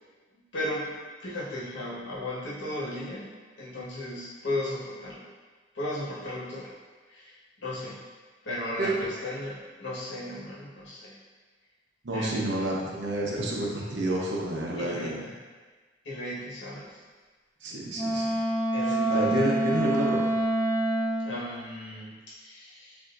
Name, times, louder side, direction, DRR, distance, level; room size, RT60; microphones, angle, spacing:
voice 1, 0.3-0.9 1.2-5.2 5.7-6.7 7.1-8.0 8.4-11.2 12.1-13.0 14.8-15.3 16.0-17.0 18.7-19.3 21.2-23.0, left 1 dB, 85° left, -7 dB, 1.4 m, -36 dB
voice 2, 12.0-15.2 17.6-18.4 19.1-20.4, right 1 dB, 75° right, -3 dB, 0.9 m, -29 dB
Wind instrument woodwind instrument, 17.9-21.4, right 1 dB, 15° left, 0.5 m, -26 dB
7.1 x 2.7 x 2.6 m, 1.4 s
head